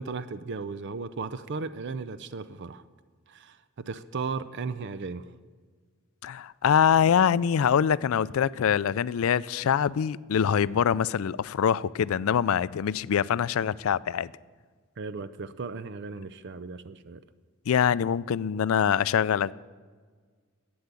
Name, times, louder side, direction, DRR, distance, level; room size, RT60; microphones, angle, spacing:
voice 1, 0.0-2.8 3.3-5.2 15.0-17.2, right 4 dB, 55° right, 0.5 m, -36 dB
voice 2, 6.2-14.3 17.7-19.5, left 8 dB, 75° left, 0.4 m, -24 dB
11.5 x 8.7 x 8.2 m
head